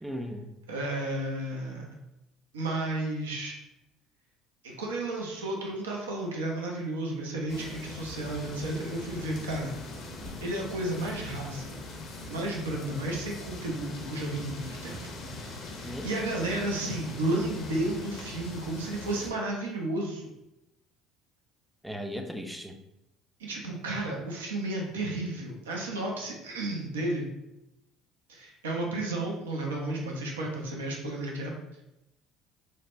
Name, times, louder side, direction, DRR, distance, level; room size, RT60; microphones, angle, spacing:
voice 1, 0.0-0.5 15.8-16.1 21.8-22.7, equal, 5° right, 5 dB, 0.4 m, -37 dB
voice 2, 0.7-1.9 2.5-3.5 4.6-9.7 10.4-11.8 12.3-15.0 15.3-20.3 23.4-27.3 28.3-31.5, right 1 dB, 90° right, 0 dB, 0.5 m, -32 dB
sound 1, 7.5-19.3, left 2 dB, 55° left, 0.6 m, -41 dB
3.2 x 2.1 x 2.5 m, 0.89 s
hypercardioid pair, 65°, 0 cm